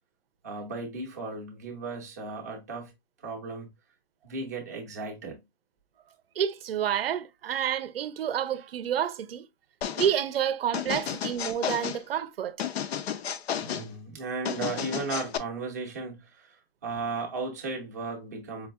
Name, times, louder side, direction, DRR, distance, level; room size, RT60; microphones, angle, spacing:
voice 1, 0.4-2.9 3.2-3.7 4.2-5.4 10.9-11.0 13.6-16.6 16.8-18.7, right 3 dB, 15° right, 0.5 m, -35 dB
voice 2, 6.4-9.4 9.9-12.6, right 9 dB, 65° right, 0.5 m, -29 dB
sound 1, 9.8-10.2 10.7-12.0 12.6-13.9 14.4-15.4, left 9 dB, 75° left, 0.6 m, -32 dB
4.6 x 2.7 x 2.3 m
hypercardioid pair, 175°, 32 cm